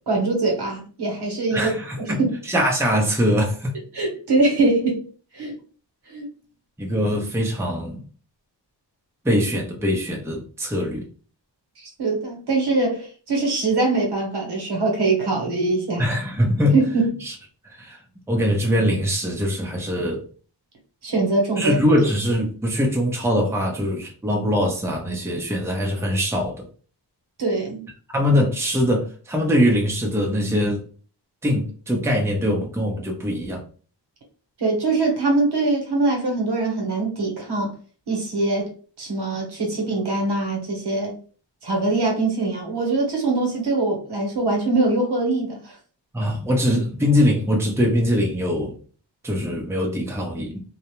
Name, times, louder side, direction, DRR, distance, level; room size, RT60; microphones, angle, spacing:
voice 1, 0.1-2.3 3.9-5.0 5.3-5.5 6.1-6.3 12.0-16.1 16.7-17.1 21.0-21.8 27.4-27.8 34.6-37.7 38.1-38.7 39.0-41.1 41.6-45.6, right 3 dB, 65° right, 1.1 m, -22 dB
voice 2, 1.5-3.7 6.8-8.0 9.2-11.0 16.0-16.8 17.2-17.3 17.8-18.0 18.3-20.2 21.6-26.6 28.1-30.8 31.4-33.6 46.1-48.8 49.2-50.6, equal, 5° right, 0.7 m, -22 dB
2.4 x 2.1 x 3.0 m
cardioid pair, 60°, 44 cm